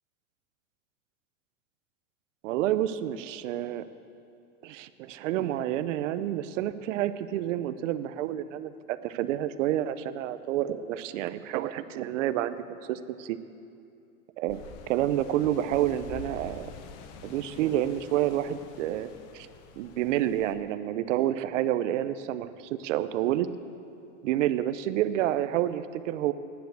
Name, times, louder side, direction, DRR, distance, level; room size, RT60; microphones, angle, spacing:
voice 1, 2.4-3.8 4.6-13.4 14.4-14.6 14.9-16.7 17.2-19.1 19.3-19.5 19.8-23.5 24.2-26.3, right 12 dB, 65° right, 13 dB, 0.7 m, -29 dB
sound 1, 14.5-20.5, left 6 dB, 40° left, 0.8 m, -47 dB
10.0 x 9.4 x 8.1 m, 2.5 s
supercardioid pair, 150°, 40 cm